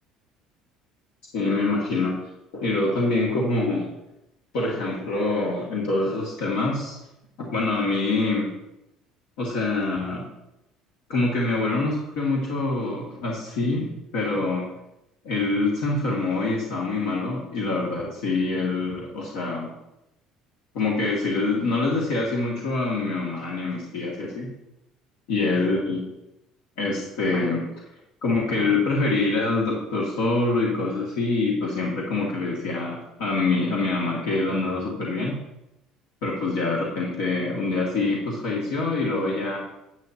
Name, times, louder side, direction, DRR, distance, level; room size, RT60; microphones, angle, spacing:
voice 1, 1.3-2.2 2.5-3.9 4.5-7.0 7.5-8.5 9.4-10.3 11.1-14.6 15.2-19.7 20.7-24.5 25.3-26.0 26.8-27.7 28.2-35.4 36.2-39.6, left 3 dB, 85° left, -4 dB, 2.1 m, -25 dB
11.5 x 8.4 x 2.9 m, 0.90 s
supercardioid pair, 95°, 0 cm